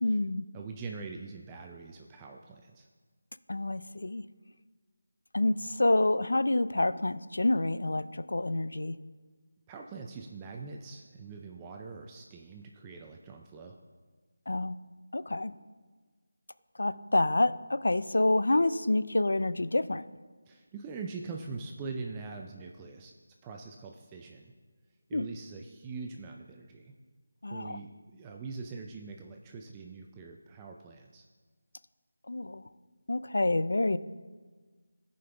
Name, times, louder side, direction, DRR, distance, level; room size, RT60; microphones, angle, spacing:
voice 1, 0.0-0.5 3.5-4.2 5.3-9.0 14.5-14.8 15.1-15.5 16.8-20.1 25.1-25.3 27.4-27.8 32.3-32.6 33.1-34.0, left 2 dB, 75° left, 15 dB, 0.4 m, -28 dB
voice 2, 0.5-2.9 9.7-13.8 20.5-23.1 23.4-24.5 25.1-26.9 27.5-31.2, right 4 dB, 15° right, 2 dB, 0.4 m, -43 dB
15.5 x 5.3 x 3.4 m, 1.4 s
figure-of-eight pair, 165°, 0 cm